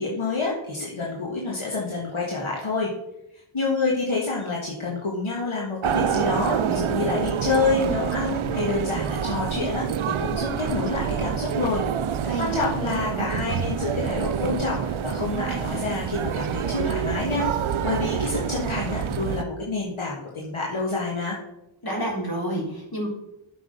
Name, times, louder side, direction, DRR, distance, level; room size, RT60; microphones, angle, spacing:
voice 1, 0.0-2.9 3.5-11.8 12.4-17.5 17.8-21.4, left 3 dB, 80° left, -3 dB, 1.7 m, -28 dB
sound 1, 5.8-19.4, right 8 dB, 80° right, 0.6 m, -27 dB
voice 2, 12.2-12.7 21.8-23.1, right 1 dB, 50° left, -3 dB, 3.5 m, -29 dB
8.2 x 6.0 x 5.2 m, 0.86 s
wide cardioid pair, 65°, 48 cm